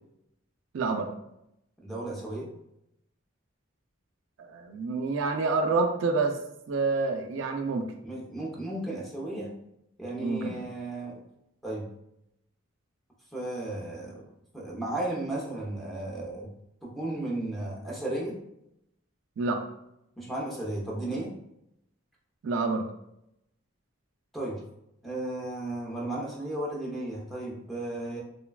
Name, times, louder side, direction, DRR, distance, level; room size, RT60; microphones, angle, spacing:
voice 1, 0.7-1.1 4.4-6.4 6.7-7.9 10.2-10.7 19.4-19.6 22.4-22.9, right 3 dB, 70° right, 4 dB, 0.3 m, -28 dB
voice 2, 1.8-2.5 8.0-9.5 10.0-11.2 11.6-11.8 13.3-14.2 14.5-16.5 16.8-18.4 20.2-21.3 24.3-24.6 25.0-28.2, right 1 dB, ahead, -4 dB, 0.5 m, -34 dB
3.1 x 2.1 x 2.3 m, 0.81 s
head